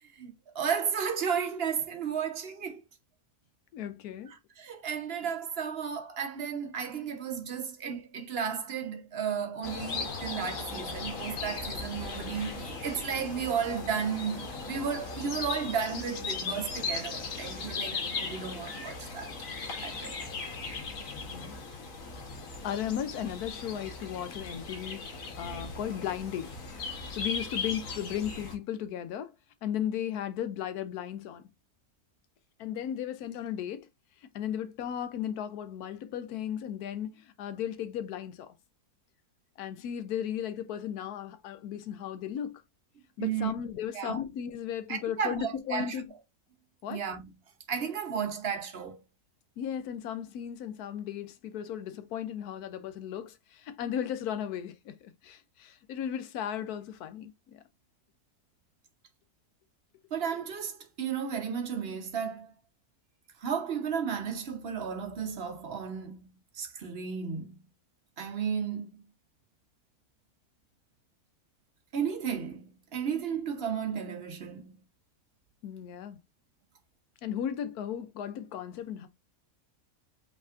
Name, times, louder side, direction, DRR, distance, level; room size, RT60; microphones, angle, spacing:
voice 1, 0.0-2.8 4.3-19.3 19.8-20.2 43.2-43.5 43.9-44.2 44.9-46.0 46.9-47.3 47.7-49.0 60.1-62.5 63.4-66.3 66.5-67.6 68.2-68.9 71.9-74.8, right 7 dB, 45° right, 1.0 m, -33 dB
voice 2, 3.7-4.3 21.3-21.5 22.6-25.1 25.4-26.5 27.1-29.3 29.6-31.4 32.6-33.9 34.3-38.5 39.6-42.6 43.2-46.1 46.8-47.0 49.6-57.6 75.6-76.2 77.2-79.1, left 9 dB, 85° left, 1.2 m, -35 dB
sound 1, 9.6-28.5, left 4 dB, 65° left, 1.4 m, -38 dB
5.5 x 3.4 x 2.4 m
omnidirectional pair, 1.6 m